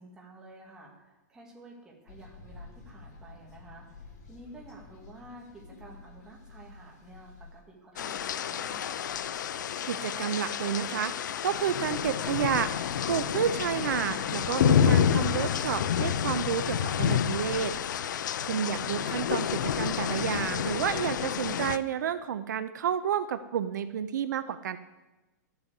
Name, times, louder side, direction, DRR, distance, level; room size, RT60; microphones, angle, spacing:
voice 1, 0.0-9.1 18.5-18.7, right 1 dB, 5° right, -3 dB, 2.3 m, -51 dB
sound 1, 2.1-7.6, left 3 dB, 65° left, 3.4 m, -50 dB
sound 2, 8.0-21.8, left 9 dB, 85° left, 0.7 m, -29 dB
voice 2, 9.9-11.1 11.4-12.7 13.1-17.7 18.4-24.8, right 9 dB, 75° right, 12 dB, 0.7 m, -30 dB
12.0 x 8.0 x 8.2 m, 1.1 s
supercardioid pair, 175°, 10 cm